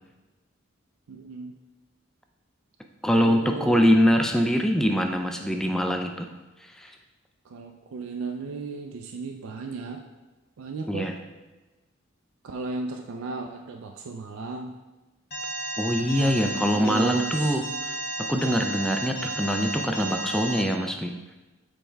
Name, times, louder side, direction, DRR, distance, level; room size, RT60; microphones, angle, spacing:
voice 1, 1.1-1.6 3.2-3.8 7.4-10.0 10.6-11.2 12.4-14.7 16.5-17.6, right 4 dB, 80° right, 3 dB, 0.4 m, -35 dB
voice 2, 3.0-6.3 6.8-6.9 10.9-11.1 15.8-17.6 18.2-21.1, equal, ahead, 5 dB, 0.3 m, -23 dB
Alarm, 15.3-20.6, right 2 dB, 45° left, 1.0 m, -33 dB
6.4 x 4.4 x 3.4 m, 1.2 s
head